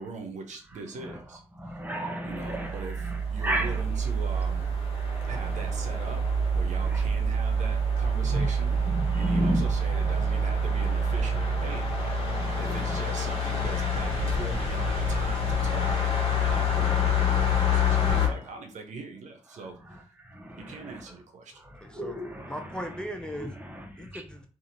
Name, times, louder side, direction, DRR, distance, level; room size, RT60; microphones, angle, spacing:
voice 1, 0.0-1.4 2.2-4.7 5.2-6.2 6.5-11.9 12.6-20.0 20.6-21.5, right 3 dB, 75° right, 0.6 m, -41 dB
voice 2, 1.6-3.8 5.0-5.6 6.9-7.0 8.3-8.5 8.9-9.6 12.3-13.0 16.4-16.6 20.3-20.9 21.7-22.5 23.4-24.2, equal, 15° right, 0.8 m, -33 dB
sound 1, 2.3-18.3, left 1 dB, 50° left, 1.2 m, -27 dB
voice 3, 21.8-22.2 22.5-23.5 24.0-24.5, equal, 5° left, 0.4 m, -38 dB
2.8 x 2.4 x 2.6 m
cardioid pair, 65°, 12 cm